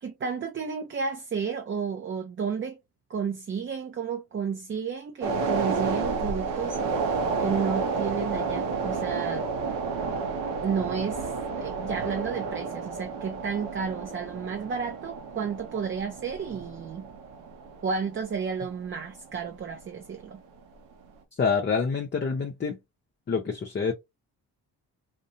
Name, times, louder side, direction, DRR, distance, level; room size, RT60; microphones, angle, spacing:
voice 1, 0.0-2.8 3.1-6.8 7.4-9.5 10.6-17.1 17.8-20.4, right 6 dB, 30° right, 0.5 m, -32 dB
sound 1, 5.2-19.8 20.1-20.3, right 4 dB, 90° right, 0.6 m, -31 dB
voice 2, 21.4-22.8 23.3-23.9, left 5 dB, 25° left, 0.6 m, -26 dB
2.6 x 2.1 x 2.6 m
hypercardioid pair, 45°, 43 cm